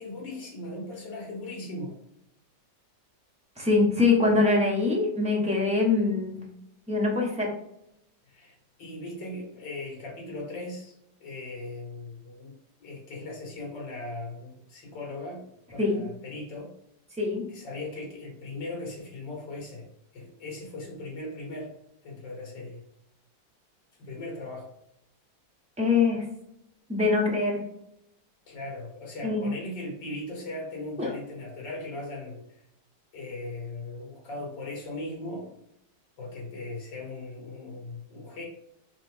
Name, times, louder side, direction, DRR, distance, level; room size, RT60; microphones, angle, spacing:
voice 1, 0.0-2.0 8.3-16.7 17.5-19.9 20.1-21.7 22.0-22.8 24.0-24.7 28.5-32.4 33.1-35.5 36.2-38.4, left 2 dB, 75° left, -1 dB, 2.2 m, -38 dB
voice 2, 3.6-6.4 6.9-7.5 15.8-16.0 17.2-17.4 25.8-26.2 26.9-27.6 29.2-29.5 31.0-31.1, left 3 dB, 5° right, -3 dB, 0.5 m, -23 dB
4.1 x 3.0 x 3.4 m, 0.80 s
omnidirectional pair, 2.0 m